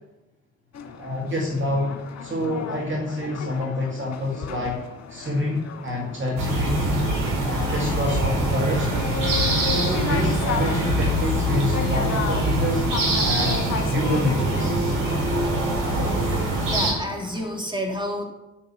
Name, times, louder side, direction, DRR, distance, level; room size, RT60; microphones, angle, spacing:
sound 1, 0.7-17.6, left 6 dB, 45° left, 1.9 m, -35 dB
voice 1, 1.0-4.8 5.1-7.1 7.4-8.9 9.6-12.9 13.2-15.0, left 1 dB, 30° right, -1 dB, 2.4 m, -27 dB
sound 2, 6.4-16.9, right 1 dB, 60° right, 4.4 m, -23 dB
voice 2, 16.2-18.2, equal, 10° right, 1 dB, 3.3 m, -30 dB
10.5 x 8.5 x 5.7 m, 0.98 s
figure-of-eight pair, 45°, 37 cm